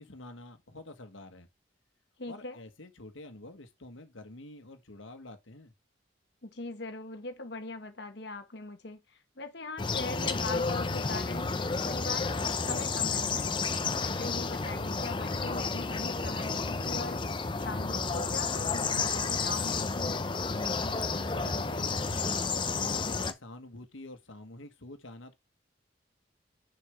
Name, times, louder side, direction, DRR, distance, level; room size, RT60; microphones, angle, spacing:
voice 1, 0.0-1.5 2.3-5.7 21.1-25.3, left 2 dB, 80° left, 1.4 m, -47 dB
voice 2, 2.2-2.6 6.4-17.3 17.6-20.3, left 2 dB, 60° left, 1.2 m, -41 dB
sound 1, 9.8-23.3, left 4 dB, 25° left, 0.6 m, -31 dB
6.7 x 4.6 x 3.4 m
head